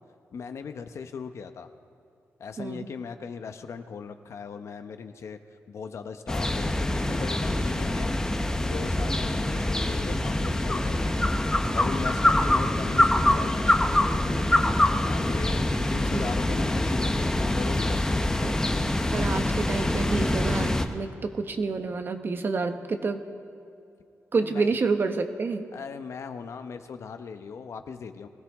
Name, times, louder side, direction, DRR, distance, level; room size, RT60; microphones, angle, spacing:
voice 1, 0.3-1.7 2.4-5.4 5.7-8.1 8.7-11.4 11.7-13.8 15.0-18.2 24.4-24.7 25.7-28.3, left 6 dB, 65° left, 8 dB, 0.9 m, -38 dB
sound 1, 6.3-20.9, left 1 dB, 10° left, 0.8 m, -25 dB
voice 2, 19.1-23.2 24.3-25.7, right 4 dB, 45° right, 7 dB, 1.0 m, -28 dB
23.0 x 16.0 x 3.6 m, 2.5 s
wide cardioid pair, 120°, 5 cm